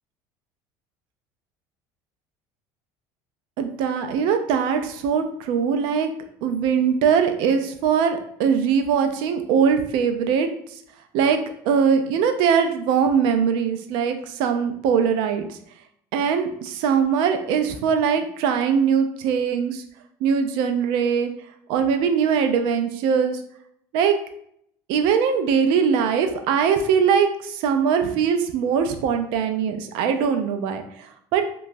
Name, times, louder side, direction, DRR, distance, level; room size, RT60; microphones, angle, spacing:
voice 1, 3.6-6.1 6.4-10.8 11.1-11.4 11.6-15.6 16.1-19.8 20.2-21.3 21.7-23.4 23.9-24.2 24.9-31.4, right 7 dB, 70° right, 7 dB, 0.4 m, -21 dB
2.9 x 2.3 x 2.6 m, 0.67 s
supercardioid pair, 110°, 9 cm